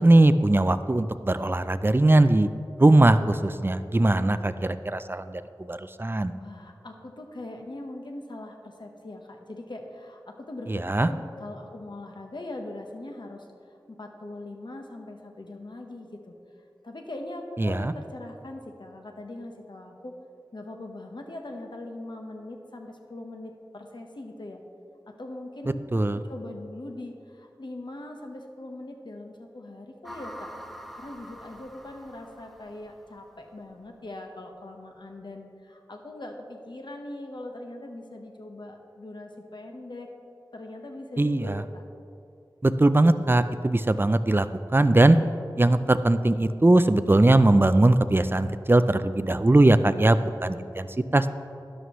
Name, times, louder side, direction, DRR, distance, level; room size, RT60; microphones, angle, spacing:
voice 1, 0.0-2.5 2.8-5.4 5.7-6.3 10.7-11.1 17.6-17.9 25.9-26.2 41.2-41.6 42.6-44.5 44.7-45.2 45.6-50.9 51.1-51.3, right 2 dB, 25° right, 12 dB, 0.4 m, -20 dB
voice 2, 6.3-13.5 13.9-16.3 16.8-20.2 20.5-24.6 25.1-25.8 26.1-30.5 30.9-40.1 40.5-41.8, left 1 dB, 70° left, 3 dB, 1.2 m, -41 dB
sound 1, 30.0-33.3, equal, ahead, 0.8 m, -45 dB
12.5 x 11.0 x 3.1 m, 2.7 s
wide cardioid pair, 45°, 8 cm